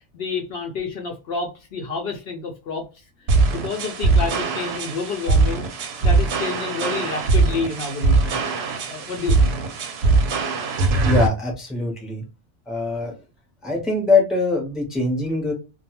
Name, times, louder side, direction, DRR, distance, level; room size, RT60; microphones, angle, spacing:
voice 1, 0.1-2.9 3.5-5.7 6.0-8.4 8.8-9.5, left 4 dB, 65° left, 1 dB, 0.7 m, -29 dB
sound 1, 3.3-11.3, right 3 dB, 65° right, 0.8 m, -21 dB
voice 2, 11.1-12.2 12.7-13.1 13.6-15.5, left 3 dB, ahead, 0 dB, 0.7 m, -22 dB
2.3 x 2.2 x 2.8 m, 0.30 s
omnidirectional pair, 1.2 m